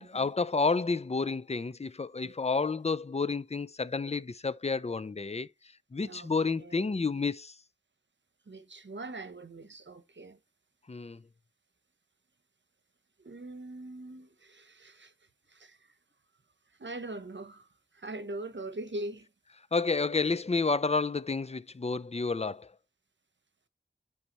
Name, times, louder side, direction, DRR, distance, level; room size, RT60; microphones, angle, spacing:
voice 1, 0.0-5.5 5.9-7.5 10.9-11.2 19.7-22.7, left 4 dB, 30° left, 0.5 m, -30 dB
voice 2, 6.0-6.3 6.6-6.8 8.5-10.4 13.2-15.1 15.5-15.8 16.8-17.7 17.9-19.3, right 2 dB, 65° right, 0.9 m, -42 dB
9.6 x 3.4 x 3.0 m
wide cardioid pair, 45°, 20 cm